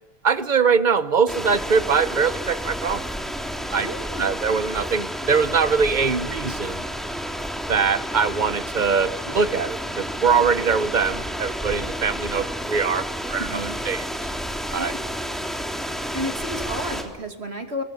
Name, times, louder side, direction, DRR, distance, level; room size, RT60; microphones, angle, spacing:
voice 1, 0.2-3.0 3.7-3.9 4.2-6.8 7.7-14.1 14.7-14.9, right 5 dB, 50° right, 13 dB, 1.1 m, -22 dB
sound 1, 1.3-17.0, equal, ahead, 3.4 m, -31 dB
voice 2, 3.8-4.3 13.4-13.8 14.8-15.0 16.1-17.8, equal, 90° right, 4 dB, 2.9 m, -32 dB
27.5 x 23.0 x 7.0 m, 1.1 s
omnidirectional pair, 1.1 m